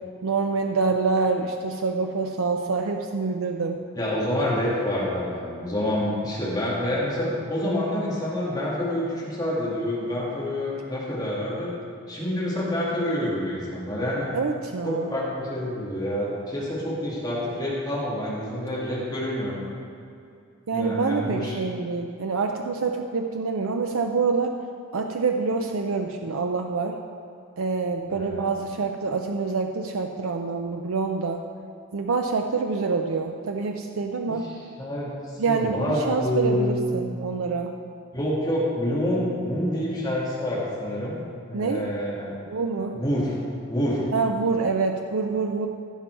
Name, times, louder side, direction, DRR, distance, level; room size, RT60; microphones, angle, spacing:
voice 1, 0.2-3.8 14.3-15.1 20.7-24.5 24.9-27.0 27.6-31.4 31.9-34.5 35.4-37.7 41.5-41.8 42.5-43.0 44.1-45.7, right 4 dB, 90° right, 4 dB, 0.5 m, -26 dB
voice 2, 4.0-11.7 12.1-14.3 14.8-19.6 20.7-21.6 28.1-28.4 34.3-34.5 34.8-37.0 38.1-41.2 41.5-42.3 42.9-43.4 43.7-44.0, left 1 dB, 20° left, -7 dB, 2.2 m, -27 dB
15.5 x 6.0 x 4.7 m, 2.5 s
head